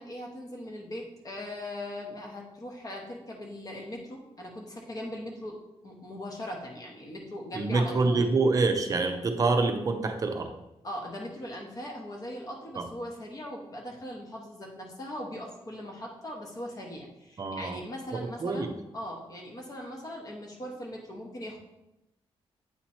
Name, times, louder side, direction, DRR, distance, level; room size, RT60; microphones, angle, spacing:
voice 1, 0.0-5.6 5.8-8.3 10.8-21.6, left 1 dB, 35° left, -1 dB, 0.9 m, -40 dB
voice 2, 7.5-10.5 12.8-12.9 17.4-17.8 18.1-18.7, right 3 dB, 35° right, 6 dB, 0.6 m, -26 dB
8.4 x 2.9 x 4.3 m, 0.93 s
wide cardioid pair, 175°, 10 cm